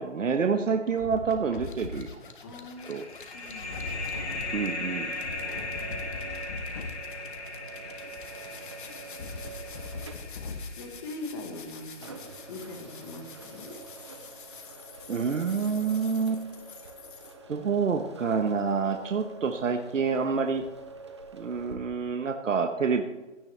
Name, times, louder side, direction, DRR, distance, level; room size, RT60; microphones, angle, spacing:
voice 1, 0.0-2.2 2.9-3.0 4.5-5.1 15.1-16.4 17.5-20.6 21.3-23.0, right 5 dB, 85° right, 5 dB, 1.3 m, -27 dB
sound 1, 0.9-17.3, left 4 dB, 45° left, 1.4 m, -43 dB
voice 2, 2.4-3.0 3.3-4.6 10.7-12.2 12.5-13.8, left 2 dB, 20° left, 3 dB, 1.4 m, -42 dB
sound 2, 2.8-12.1, left 3 dB, 60° left, 2.7 m, -38 dB
sound 3, 3.6-21.8, right 4 dB, 25° right, 0.7 m, -46 dB
16.5 x 10.5 x 3.3 m, 1.1 s
hypercardioid pair, 165°, 37 cm